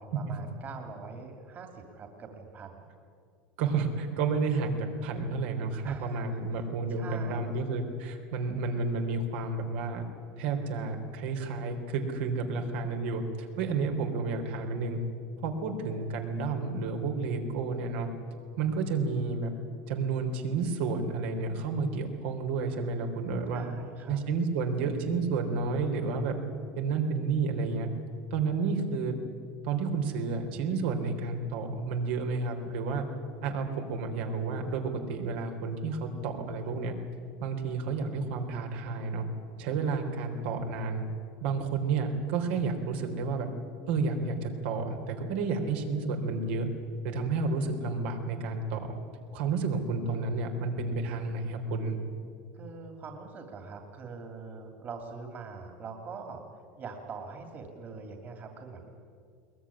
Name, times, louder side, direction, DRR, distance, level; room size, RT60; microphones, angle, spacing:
voice 1, 0.0-2.8 5.8-6.2 6.6-7.4 23.5-24.2 36.6-36.7 52.5-56.4 56.8-58.9, right 4 dB, 30° right, 4 dB, 2.7 m, -43 dB
voice 2, 3.6-10.0 10.4-15.0 15.4-18.1 18.6-19.5 19.9-23.6 24.1-26.4 26.8-27.9 28.3-29.1 29.6-33.1 33.4-36.9 37.4-39.2 39.6-41.0 41.4-43.5 43.9-46.7 47.0-48.9 49.3-51.9, right 4 dB, 70° right, 4 dB, 3.8 m, -31 dB
22.0 x 21.0 x 9.9 m, 2.3 s
supercardioid pair, 155°, 6 cm